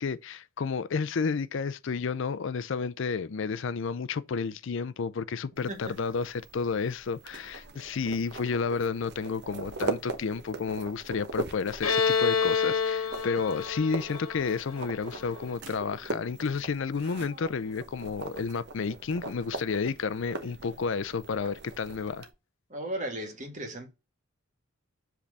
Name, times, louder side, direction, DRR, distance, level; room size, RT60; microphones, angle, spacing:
voice 1, 0.0-22.3, left 5 dB, 60° left, 0.5 m, -31 dB
sound 1, 5.6-22.3, right 3 dB, 55° right, 1.0 m, -41 dB
voice 2, 5.7-6.0 22.7-23.9, right 1 dB, 35° right, 1.7 m, -36 dB
Bowed string instrument, 11.8-15.4, left 6 dB, 85° left, 1.4 m, -28 dB
7.5 x 3.4 x 4.1 m
head